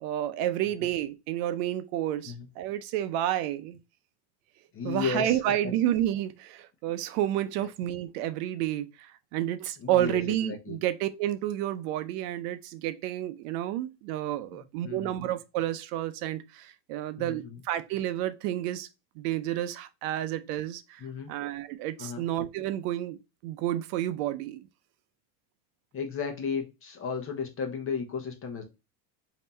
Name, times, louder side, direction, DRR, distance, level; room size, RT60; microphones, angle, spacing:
voice 1, 0.0-3.8 4.8-18.9 19.2-23.2 23.4-24.7, right 12 dB, 65° right, 0.6 m, -30 dB
voice 2, 4.7-5.4 9.8-10.8 14.5-15.2 17.2-17.6 21.0-21.3 22.0-22.2 25.9-28.6, left 5 dB, 25° left, 0.9 m, -34 dB
3.3 x 2.9 x 4.2 m
supercardioid pair, 125°, 49 cm